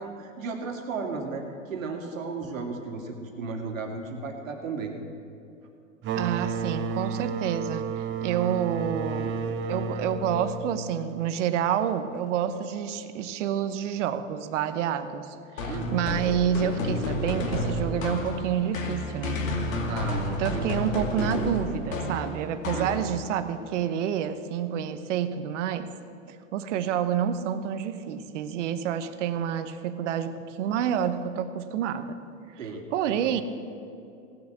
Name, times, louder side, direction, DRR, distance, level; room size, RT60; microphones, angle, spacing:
voice 1, 0.0-5.0 15.7-16.2 19.9-20.8 21.2-21.3 22.7-23.1 32.6-33.3, right 4 dB, 90° right, 2 dB, 2.5 m, -35 dB
sound 1, 6.0-11.5, right 5 dB, 30° right, 0.9 m, -32 dB
voice 2, 6.1-19.4 20.4-25.9 26.3-32.2 32.9-33.4, right 9 dB, 65° right, 11 dB, 1.1 m, -28 dB
sound 2, 15.6-23.4, left 1 dB, 85° left, 2.4 m, -31 dB
17.5 x 7.0 x 8.1 m, 2.7 s
hypercardioid pair, 120°, 39 cm